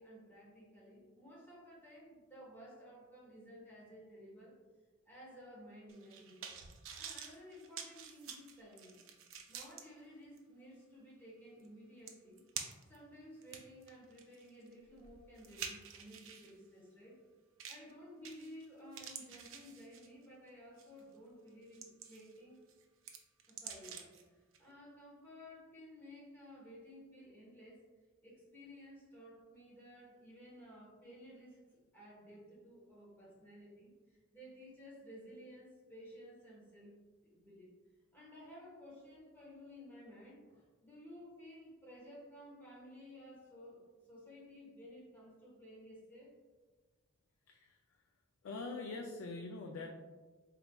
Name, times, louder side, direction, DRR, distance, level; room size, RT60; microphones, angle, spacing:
voice 1, 0.0-4.5 5.0-6.4 7.0-9.0 9.5-12.4 12.9-17.2 17.7-22.6 23.5-24.1 24.6-27.9 28.2-31.6 31.9-37.7 38.1-46.3, equal, 10° left, -6 dB, 1.1 m, -55 dB
sound 1, 5.9-9.8 10.4-10.5 11.6-11.7 12.1-13.0 13.4-16.5 17.6-17.9 18.2-18.6 18.9-20.2 20.8-21.0 21.5-22.4 22.7-24.2 24.5-24.6, right 7 dB, 70° right, 0.4 m, -48 dB
voice 2, 47.5-47.8 48.4-49.9, left 3 dB, 70° left, 2 dB, 0.3 m, -43 dB
4.0 x 3.2 x 2.2 m, 1.3 s
head